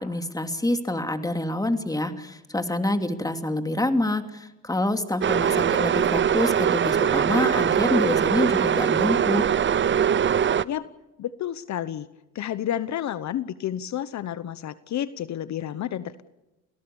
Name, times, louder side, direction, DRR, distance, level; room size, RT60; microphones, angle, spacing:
voice 1, 0.0-9.5, left 1 dB, 10° left, 7 dB, 2.7 m, -27 dB
sound 1, 5.2-10.6, right 8 dB, 40° right, 0.7 m, -22 dB
voice 2, 11.2-12.1 12.3-16.2, left 11 dB, 65° left, 15 dB, 1.0 m, -30 dB
28.0 x 18.0 x 7.1 m, 1.0 s
cardioid pair, 90°, 30 cm